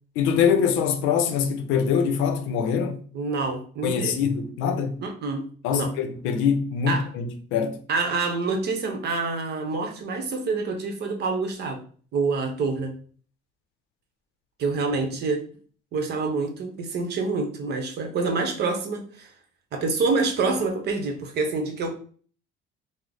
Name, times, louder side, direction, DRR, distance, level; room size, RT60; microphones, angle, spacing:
voice 1, 0.2-3.0 3.8-5.0 5.6-7.8, left 7 dB, 80° left, 0.6 m, -24 dB
voice 2, 3.1-4.2 5.0-5.9 6.9-7.1 7.9-11.8 12.1-13.0 14.6-15.5 15.9-19.3 19.7-21.9, right 3 dB, 60° right, 0.9 m, -27 dB
3.1 x 2.0 x 3.8 m
cardioid pair, 105°, 20 cm